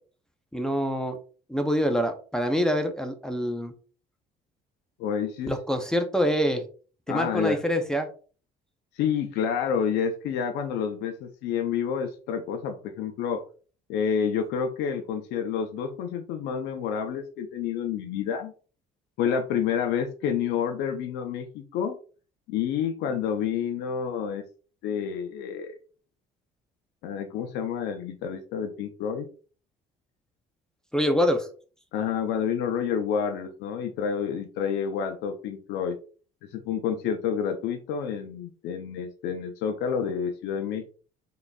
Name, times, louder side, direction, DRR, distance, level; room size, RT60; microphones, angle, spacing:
voice 1, 0.5-1.2 1.5-3.7 5.5-6.6 7.1-8.1 30.9-31.5, equal, 5° left, 4 dB, 0.6 m, -25 dB
voice 2, 5.0-5.5 7.1-7.6 9.0-13.4 13.9-18.5 19.2-22.0 22.5-24.4 24.8-25.8 27.0-29.3 31.9-36.0 36.4-40.9, left 7 dB, 85° left, 5 dB, 0.6 m, -29 dB
3.8 x 3.7 x 2.3 m, 0.39 s
cardioid pair, 110°, 17 cm